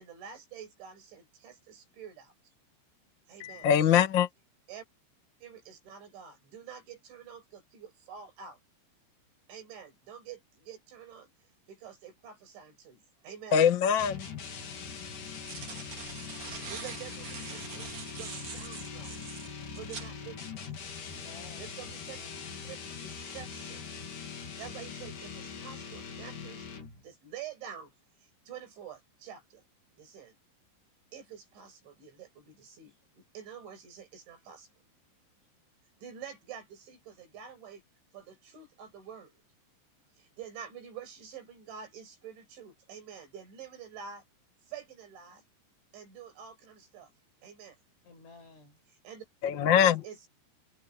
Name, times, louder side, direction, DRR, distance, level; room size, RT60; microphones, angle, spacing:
voice 1, 0.0-2.5 3.3-3.7 4.7-4.9 5.4-8.6 9.5-11.3 11.7-13.6 16.7-19.2 19.7-20.8 21.6-22.3 22.6-23.8 24.6-26.7 26.9-27.9 28.2-29.6 30.0-30.4 31.1-34.7 36.0-37.8 38.1-39.4 40.1-44.2 44.6-45.4 45.9-47.1 47.4-47.8 49.0-49.3 49.8-50.3, right 8 dB, 80° right, 8.7 m, -47 dB
voice 2, 3.4-4.3 13.5-14.3 49.4-50.0, left 8 dB, 70° left, 1.1 m, -23 dB
sound 1, 14.0-27.1, left 6 dB, 50° left, 4.2 m, -42 dB
sound 2, 14.1-14.2 15.1-20.1, right 6 dB, 40° right, 3.5 m, -44 dB
voice 3, 21.1-22.6 48.0-48.8, left 3 dB, 85° left, 9.8 m, -54 dB
omnidirectional pair, 5.3 m